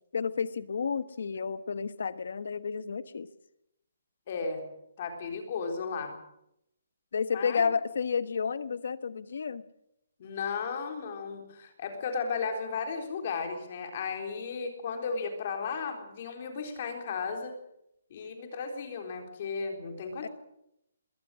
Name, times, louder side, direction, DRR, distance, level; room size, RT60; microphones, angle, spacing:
voice 1, 0.1-3.3 7.1-9.6 20.2-20.3, left 6 dB, 60° left, 14 dB, 1.3 m, -31 dB
voice 2, 4.3-4.6 5.0-6.1 7.3-7.6 10.2-17.5 18.1-20.3, left 5 dB, 30° left, 4 dB, 3.8 m, -35 dB
21.5 x 18.0 x 7.6 m, 0.80 s
hypercardioid pair, 175°, 0 cm